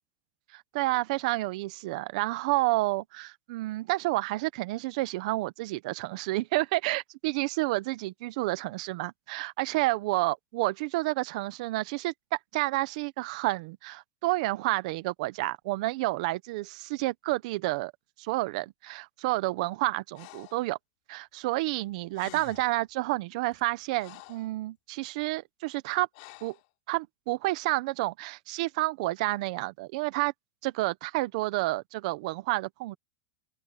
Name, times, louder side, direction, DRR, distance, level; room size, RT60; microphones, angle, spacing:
voice 1, 0.5-12.1 12.5-17.9 18.2-20.8 21.1-26.1 26.4-26.6 26.9-30.3 30.6-33.0, right 20 dB, 50° right, 0.8 m, -30 dB
Breathing, 20.1-20.7 21.8-21.9 22.1-22.8 23.5-24.5 26.1-26.7, left 21 dB, 50° left, 3.5 m, -49 dB
open air
supercardioid pair, 175°, 5 cm